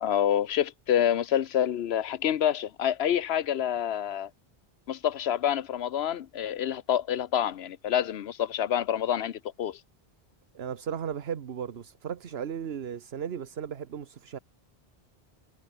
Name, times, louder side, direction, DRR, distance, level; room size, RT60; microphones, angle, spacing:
voice 1, 0.0-4.3 4.9-9.8, left 10 dB, 75° left, 1.0 m, -27 dB
voice 2, 10.5-14.4, right 8 dB, 75° right, 1.2 m, -35 dB
omnidirectional pair, 1.1 m